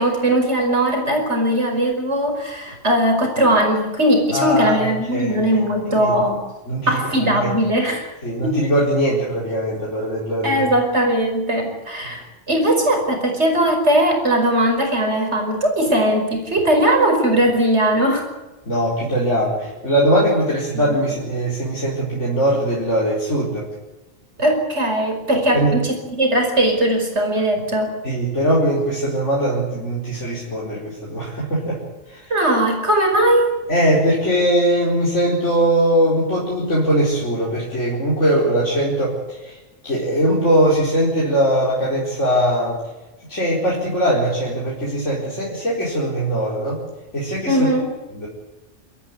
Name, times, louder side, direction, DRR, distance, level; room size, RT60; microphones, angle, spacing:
voice 1, 0.0-6.4 6.9-8.1 8.4-8.5 10.4-12.2 12.5-18.2 24.4-27.9 32.3-33.5 47.5-47.9, right 1 dB, 65° right, 3 dB, 5.5 m, -19 dB
voice 2, 4.3-5.6 5.9-6.1 6.7-7.5 8.2-10.6 18.7-23.7 25.5-25.7 28.0-31.8 32.1-32.3 33.7-39.6 39.8-42.8 43.3-46.8 47.1-47.7 48.1-48.3, right 1 dB, 80° left, -5 dB, 4.9 m, -20 dB
27.0 x 14.0 x 9.6 m, 1.1 s
omnidirectional pair, 1.2 m